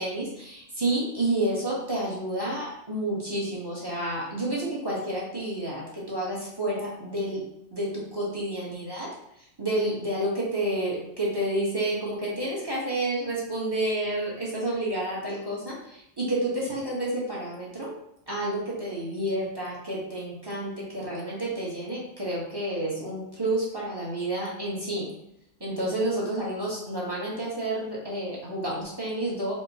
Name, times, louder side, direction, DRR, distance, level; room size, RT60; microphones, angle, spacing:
voice 1, 0.0-7.4 7.7-9.1 9.6-17.9 18.3-25.0 25.6-29.5, right 1 dB, 25° right, -6 dB, 0.9 m, -30 dB
4.4 x 2.1 x 2.7 m, 0.78 s
omnidirectional pair, 1.2 m